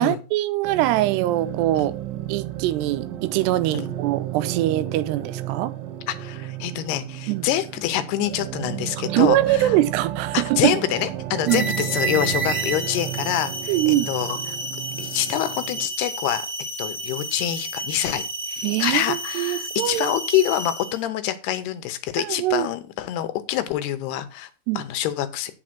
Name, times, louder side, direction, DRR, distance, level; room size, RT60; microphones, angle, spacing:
voice 1, 0.0-2.0 2.3-5.7 7.3-7.5 9.1-10.8 11.5-11.9 13.7-14.1 18.6-20.2 22.2-22.7 24.7-24.8, right 15 dB, 90° right, 2.8 m, -23 dB
sound 1, 0.6-15.9, right 12 dB, 70° right, 2.8 m, -33 dB
voice 2, 6.1-9.8 10.3-14.4 15.0-16.5 16.8-18.2 18.5-24.5 24.8-25.5, left 12 dB, 80° left, 2.9 m, -26 dB
sound 2, 11.5-21.0, right 2 dB, 5° right, 1.5 m, -31 dB
8.6 x 6.4 x 5.8 m
omnidirectional pair, 4.8 m